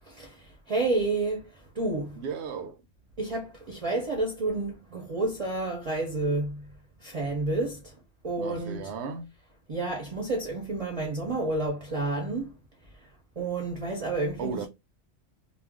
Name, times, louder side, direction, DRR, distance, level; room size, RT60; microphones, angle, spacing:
voice 1, 0.0-2.2 3.2-8.0 8.2-8.9 9.7-12.5 12.8-14.7, right 2 dB, 40° right, 0.6 m, -30 dB
voice 2, 2.2-2.8 8.4-9.3 14.4-14.7, right 5 dB, 70° right, 0.8 m, -35 dB
2.4 x 2.2 x 3.5 m
omnidirectional pair, 1.3 m